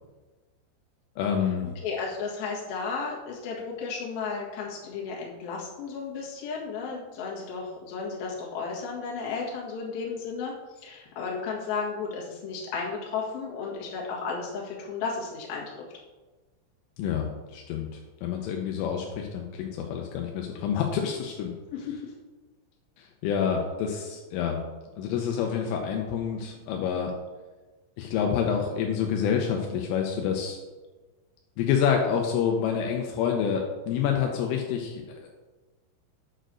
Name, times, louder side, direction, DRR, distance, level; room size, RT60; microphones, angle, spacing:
voice 1, 1.2-1.7 17.0-21.5 23.0-24.6 25.0-27.1 28.0-30.6 31.6-35.3, left 7 dB, 80° left, 1 dB, 3.2 m, -28 dB
voice 2, 1.8-10.5 10.8-15.7 21.7-22.1, left 5 dB, 60° left, -4 dB, 3.1 m, -33 dB
9.1 x 4.5 x 6.2 m, 1.2 s
omnidirectional pair, 5.9 m